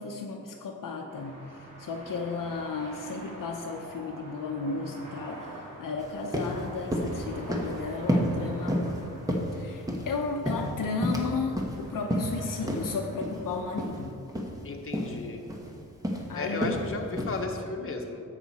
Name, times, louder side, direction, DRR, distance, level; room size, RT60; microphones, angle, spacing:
voice 1, 0.0-8.8 9.5-14.2 16.3-16.8, left 4 dB, 70° left, 1 dB, 0.8 m, -34 dB
sound 1, 1.1-14.0, right 1 dB, 80° right, 2.4 m, -47 dB
sound 2, 6.0-6.1 6.3-6.6 6.9-7.2 7.5-7.8 8.1-8.3 8.7-9.0 9.3-10.1 10.5-11.3 11.6-11.7 12.1-12.4 12.7-12.8 13.2-13.4 13.8-14.0 14.3-14.5 14.9-15.1 15.5-15.7 16.0-16.2 16.6-16.8 17.2-17.4, equal, 10° right, 1.2 m, -29 dB
voice 2, 14.6-15.4 16.3-18.2, left 3 dB, 40° left, 1 dB, 1.2 m, -34 dB
11.0 x 7.8 x 4.2 m, 2.6 s
wide cardioid pair, 125°, 33 cm